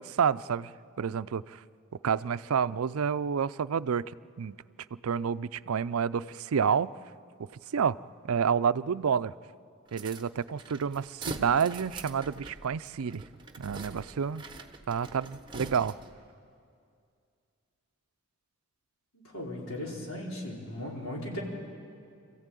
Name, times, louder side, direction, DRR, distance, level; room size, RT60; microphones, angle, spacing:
voice 1, 0.0-1.6 2.0-4.0 4.4-4.6 5.0-6.9 7.4-8.0 8.2-9.3 9.9-13.2 13.6-14.4 14.9-15.9, right 7 dB, 85° right, 15 dB, 0.5 m, -29 dB
sound 1, 9.9-16.2, right 3 dB, 20° right, 1.0 m, -44 dB
voice 2, 19.1-21.4, left 1 dB, 75° left, -3 dB, 4.7 m, -37 dB
26.0 x 15.0 x 9.1 m, 2.4 s
head